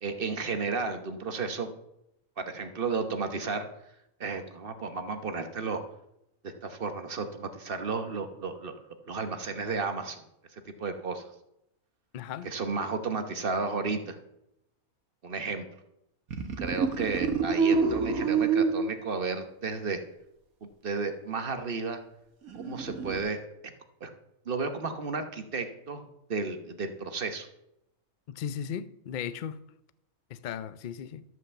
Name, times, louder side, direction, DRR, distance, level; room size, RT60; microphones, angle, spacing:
voice 1, 0.0-1.7 2.4-3.6 4.2-5.8 6.4-8.7 9.1-10.2 10.8-11.2 12.4-14.2 15.2-15.7 16.6-20.0 20.6-22.0 22.5-23.4 24.0-24.1 24.5-27.5, right 4 dB, 45° right, 1.1 m, -33 dB
voice 2, 12.1-12.5 28.3-29.6 30.3-31.2, left 8 dB, 70° left, 0.4 m, -36 dB
sound 1, 16.3-19.0 22.5-23.2, right 5 dB, 80° right, 1.6 m, -27 dB
12.5 x 5.7 x 7.1 m
omnidirectional pair, 1.5 m